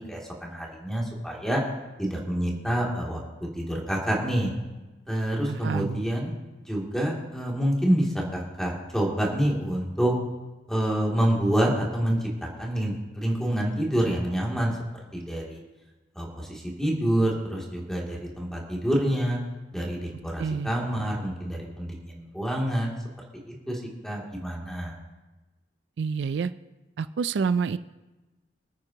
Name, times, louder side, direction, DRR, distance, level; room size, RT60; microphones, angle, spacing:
voice 1, 0.1-1.6 2.0-3.2 3.5-4.5 5.1-6.3 6.6-10.1 10.7-14.7 15.1-15.6 16.1-19.4 19.7-22.9 23.4-24.9, right 1 dB, 5° left, -3 dB, 2.6 m, -27 dB
voice 2, 5.5-6.0 20.4-20.7 26.0-26.5 27.0-27.8, right 5 dB, 75° right, 13 dB, 0.4 m, -28 dB
26.0 x 9.1 x 2.9 m, 1.2 s
head